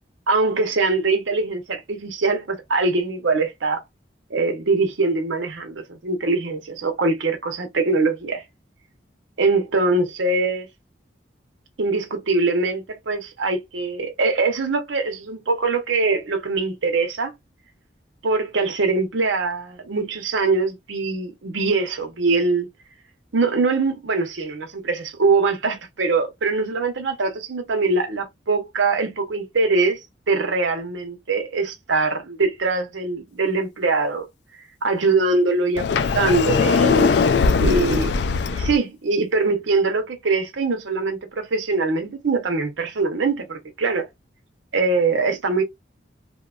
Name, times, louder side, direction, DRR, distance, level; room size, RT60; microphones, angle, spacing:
voice 1, 0.3-3.8 4.3-8.4 9.4-10.7 11.8-17.3 18.2-22.7 23.3-30.0 30.3-34.3 34.5-37.1 37.6-38.1 38.5-44.1 44.7-45.6, right 3 dB, 85° right, 0.7 m, -22 dB
Sliding door, 35.8-38.8, left 5 dB, 65° left, 0.3 m, -20 dB
2.8 x 2.2 x 2.3 m
head